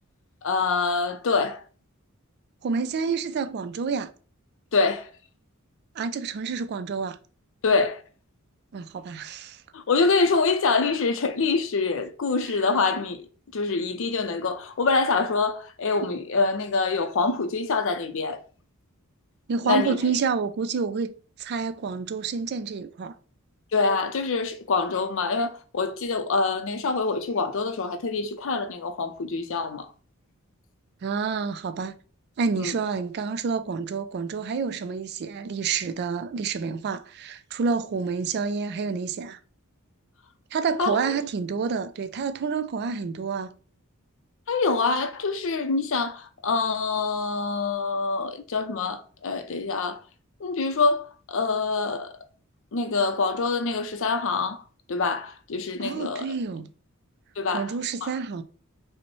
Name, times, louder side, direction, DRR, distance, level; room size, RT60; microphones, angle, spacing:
voice 1, 0.4-1.6 4.7-5.1 7.6-8.0 9.7-13.2 13.5-18.4 19.6-20.0 23.7-29.9 32.6-32.8 40.8-41.0 44.5-50.0 50.4-52.1 52.7-54.6 54.9-56.2 57.4-57.7 58.0-58.2, left 4 dB, 65° left, 0.5 m, -25 dB
voice 2, 2.6-4.1 6.0-7.2 8.7-9.6 19.5-21.1 21.4-23.1 31.0-31.9 32.4-39.4 40.5-43.5 55.8-56.7 57.5-58.4, right 5 dB, 50° right, 0.3 m, -28 dB
5.2 x 2.1 x 3.0 m
head